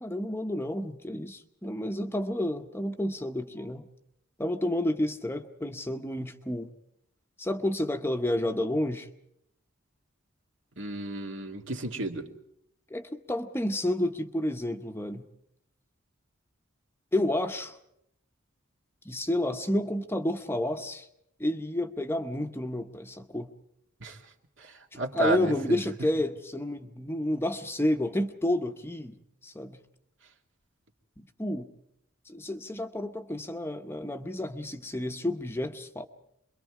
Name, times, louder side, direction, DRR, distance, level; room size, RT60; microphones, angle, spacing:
voice 1, 0.0-3.9 4.4-6.7 7.4-9.1 12.9-15.2 17.1-17.8 19.0-21.1 21.4-23.5 25.1-29.8 31.2-31.7 32.3-36.1, left 1 dB, 10° left, 7 dB, 0.8 m, -30 dB
voice 2, 10.8-12.2 24.0-24.2 24.6-25.8, right 2 dB, 70° right, 3 dB, 2.2 m, -32 dB
28.0 x 22.5 x 4.9 m, 0.76 s
head